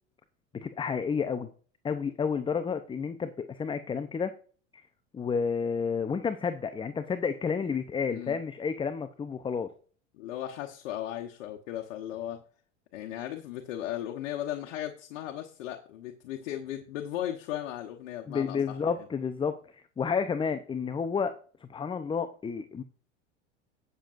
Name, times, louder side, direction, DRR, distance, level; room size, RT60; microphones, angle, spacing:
voice 1, 0.6-1.5 1.8-4.3 4.7-4.8 5.1-9.7 18.3-21.4 21.7-22.8, left 6 dB, 15° left, 10 dB, 0.6 m, -30 dB
voice 2, 10.1-12.4 12.9-18.8, left 12 dB, 70° left, 2 dB, 1.2 m, -36 dB
18.5 x 6.8 x 2.6 m, 0.43 s
hypercardioid pair, 90°, 37 cm